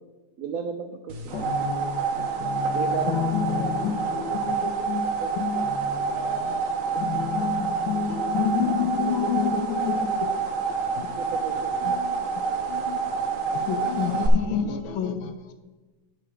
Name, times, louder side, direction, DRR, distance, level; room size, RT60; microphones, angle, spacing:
voice 1, 0.4-1.2 2.7-3.3 5.1-5.3 11.1-12.0, right 6 dB, 90° right, 7 dB, 0.7 m, -33 dB
sound 1, 1.1-14.3, right 5 dB, 50° right, 1.1 m, -28 dB
voice 2, 1.3-4.6 5.6-6.4, left 5 dB, 70° left, 7 dB, 1.5 m, -36 dB
voice 3, 3.1-10.3 10.9-11.3 11.8-12.2 12.7-13.1 13.5-15.5, left 7 dB, 85° left, 9 dB, 1.6 m, -29 dB
12.0 x 4.4 x 5.0 m, 1.2 s
omnidirectional pair, 2.1 m